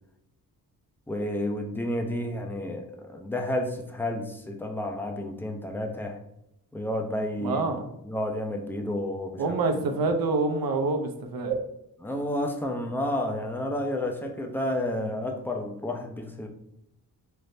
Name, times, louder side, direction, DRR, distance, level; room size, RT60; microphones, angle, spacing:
voice 1, 1.1-6.2 6.7-7.7 8.0-9.4 12.0-16.5, left 1 dB, 5° left, 2 dB, 0.4 m, -31 dB
voice 2, 7.4-7.8 9.4-11.6, right 3 dB, 60° right, 5 dB, 0.6 m, -26 dB
3.3 x 2.0 x 2.6 m, 0.79 s
cardioid pair, 60°, 39 cm